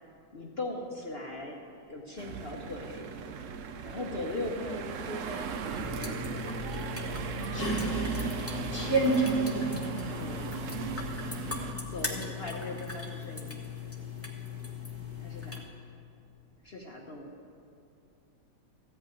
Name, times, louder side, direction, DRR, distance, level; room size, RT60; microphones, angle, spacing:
voice 1, 0.3-1.6 1.9-3.1 3.8-6.4 10.2-10.4 11.9-13.6 15.2-15.6 16.6-17.3, left 2 dB, 45° left, 0 dB, 0.9 m, -39 dB
sound 1, 2.2-11.7, right 5 dB, 65° right, 0.8 m, -37 dB
sound 2, 5.7-15.6, left 4 dB, 10° left, 0.9 m, -38 dB
voice 2, 7.5-8.2 8.7-9.9, right 3 dB, 20° right, -2 dB, 0.8 m, -28 dB
14.5 x 5.7 x 8.9 m, 2.6 s
omnidirectional pair, 1.8 m